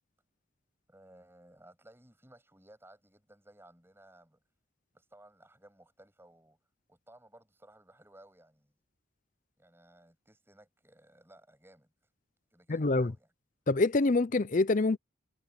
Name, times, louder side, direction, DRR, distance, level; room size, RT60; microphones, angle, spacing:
voice 1, 0.9-4.4 4.9-6.6 6.9-8.7 9.6-11.9 12.5-13.3, right 1 dB, 10° right, 6.5 m, -58 dB
voice 2, 12.7-13.1 13.7-15.0, left 3 dB, 40° left, 0.5 m, -26 dB
head